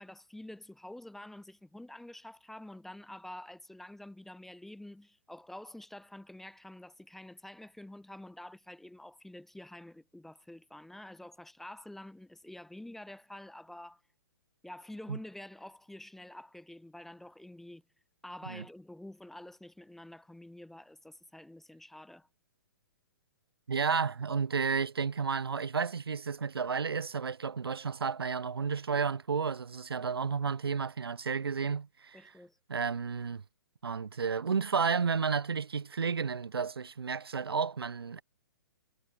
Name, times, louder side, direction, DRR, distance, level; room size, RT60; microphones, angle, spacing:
voice 1, 0.0-14.0 14.6-17.8 18.2-22.3 32.1-32.6, left 1 dB, ahead, 0.5 m, -48 dB
voice 2, 23.7-32.3 32.7-33.4 33.8-38.2, right 5 dB, 85° right, 0.4 m, -32 dB
figure-of-eight pair, 120°, 12 cm